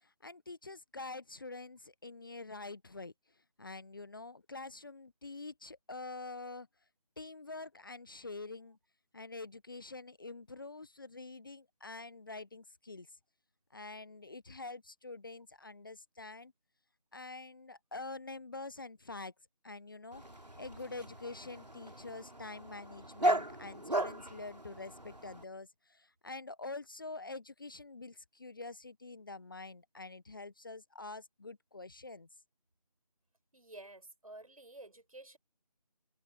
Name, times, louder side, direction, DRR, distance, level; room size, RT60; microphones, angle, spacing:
voice 1, 0.0-3.1 3.6-6.7 7.2-8.8 9.1-13.1 13.7-16.5 17.1-19.3 19.6-20.2 20.6-32.3, left 3 dB, 30° left, 1.0 m, -46 dB
Dog, 20.1-25.4, right 1 dB, 85° right, 3.1 m, -37 dB
voice 2, 33.5-35.4, right 2 dB, 60° right, 7.1 m, -51 dB
figure-of-eight pair, 160°, 21 cm